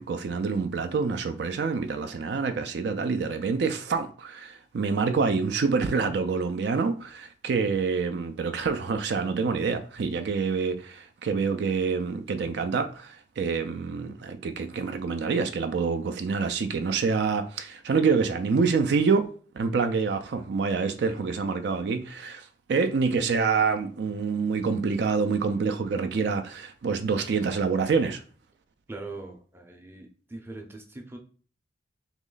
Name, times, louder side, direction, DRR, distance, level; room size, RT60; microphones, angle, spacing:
voice 1, 0.0-19.3 19.5-28.2, right 5 dB, 70° right, 0.4 m, -27 dB
voice 2, 28.9-31.2, right 2 dB, 15° right, 0.6 m, -41 dB
3.1 x 3.0 x 3.8 m
head